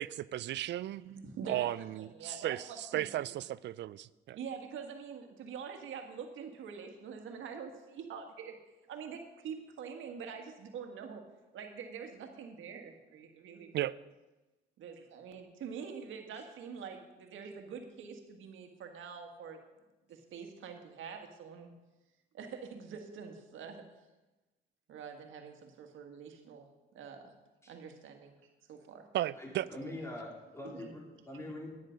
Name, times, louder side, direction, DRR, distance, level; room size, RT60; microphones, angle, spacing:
voice 1, 0.0-1.0 1.5-4.4 13.7-13.9 29.1-29.7, right 13 dB, 65° right, 19 dB, 0.4 m, -35 dB
voice 2, 1.0-3.0 4.3-8.6 8.9-11.2 11.5-13.9 14.8-19.6 20.1-21.7 22.3-23.8 24.9-26.7 26.9-27.3 27.7-28.4 28.7-29.1 30.6-30.9 31.3-31.5, right 6 dB, 80° right, 4 dB, 1.7 m, -45 dB
voice 3, 29.4-31.8, left 1 dB, 15° left, -1 dB, 3.2 m, -44 dB
10.0 x 9.6 x 5.2 m, 1.1 s
cardioid pair, 90°, 20 cm